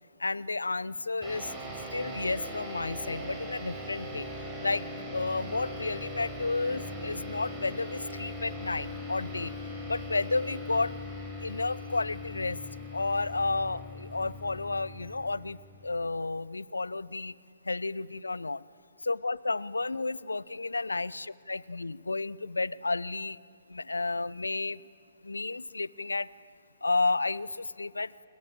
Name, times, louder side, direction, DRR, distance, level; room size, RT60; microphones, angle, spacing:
voice 1, 0.2-1.5 1.9-4.3 4.6-9.5 9.9-10.9 11.4-12.6 12.9-15.6 15.8-17.3 17.7-18.6 19.0-23.4 23.7-24.8 25.2-26.3 26.8-28.1, left 3 dB, 85° left, 21 dB, 0.6 m, -31 dB
sound 1, 1.2-16.0, left 1 dB, 20° right, 6.0 m, -40 dB
29.0 x 21.5 x 8.7 m, 2.4 s
figure-of-eight pair, 125°, 0 cm